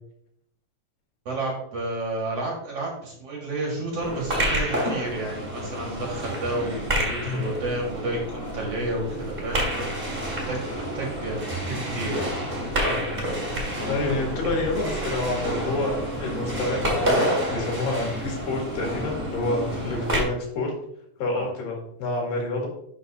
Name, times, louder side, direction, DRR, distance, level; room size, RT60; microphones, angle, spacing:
voice 1, 1.3-10.0 10.3-12.3 21.3-21.5, right 2 dB, 50° right, -2 dB, 2.3 m, -31 dB
sound 1, 4.0-20.2, equal, 25° right, 1.2 m, -29 dB
voice 2, 13.9-20.7 21.2-22.7, left 2 dB, 75° left, 0 dB, 3.4 m, -28 dB
11.5 x 6.1 x 2.6 m, 0.71 s
omnidirectional pair, 4.1 m